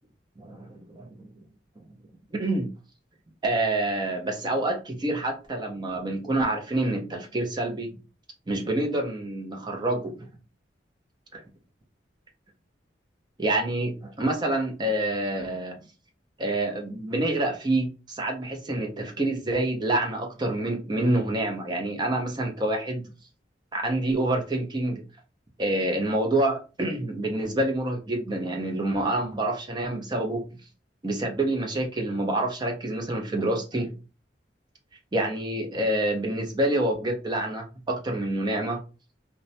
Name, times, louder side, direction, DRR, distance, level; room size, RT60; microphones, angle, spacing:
voice 1, 0.4-1.3 2.3-2.7 3.4-8.0 8.5-10.3 11.3-11.4 13.4-15.8 16.4-23.0 23.7-25.0 25.6-30.4 31.0-33.9 35.1-38.8, right 1 dB, 25° right, 2 dB, 0.5 m, -27 dB
2.2 x 2.0 x 2.7 m, 0.32 s
head